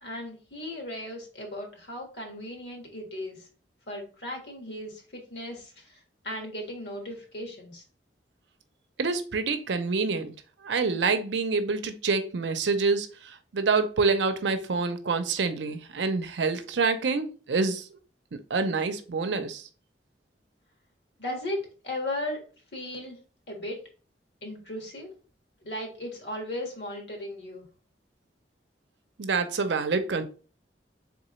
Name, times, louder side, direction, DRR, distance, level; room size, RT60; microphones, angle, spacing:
voice 1, 0.0-3.5 3.9-7.8 21.2-22.4 22.7-23.2 23.5-23.8 24.4-25.1 25.6-27.6, left 1 dB, 75° left, 1.5 m, -36 dB
voice 2, 9.0-10.3 10.6-17.9 18.3-19.7 29.2-30.2, right 4 dB, 85° right, 0.6 m, -27 dB
3.7 x 3.7 x 3.1 m
head